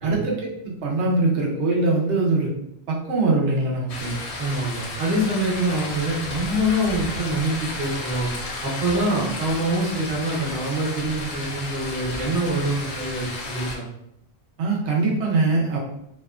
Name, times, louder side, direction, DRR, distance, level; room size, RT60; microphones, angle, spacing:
voice 1, 0.0-2.5 2.9-4.2 14.6-15.8, right 3 dB, 85° right, -1 dB, 1.0 m, -22 dB
sound 1, 3.9-13.8, left 2 dB, 80° left, 0.8 m, -33 dB
voice 2, 4.4-8.3 8.6-13.8, right 1 dB, 50° right, -5 dB, 1.0 m, -25 dB
2.8 x 2.2 x 2.3 m, 0.77 s
omnidirectional pair, 1.1 m